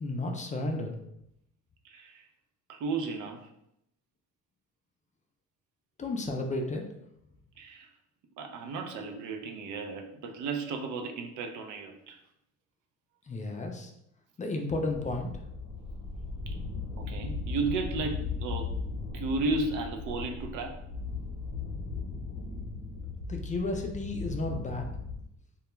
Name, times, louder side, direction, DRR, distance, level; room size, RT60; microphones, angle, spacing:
voice 1, 0.0-0.9 6.0-6.8 13.3-13.9 14.4-15.3 23.3-24.8, left 2 dB, 25° left, 3 dB, 0.3 m, -32 dB
voice 2, 1.8-2.2 2.7-3.4 7.6-7.9 8.4-12.2 17.0-18.7 19.1-20.8, right 3 dB, 80° right, 4 dB, 0.5 m, -34 dB
Far Away Rocket Launch, 14.9-25.2, left 4 dB, 70° left, 0.7 m, -37 dB
2.2 x 2.2 x 2.9 m, 0.79 s
cardioid pair, 90°, 30 cm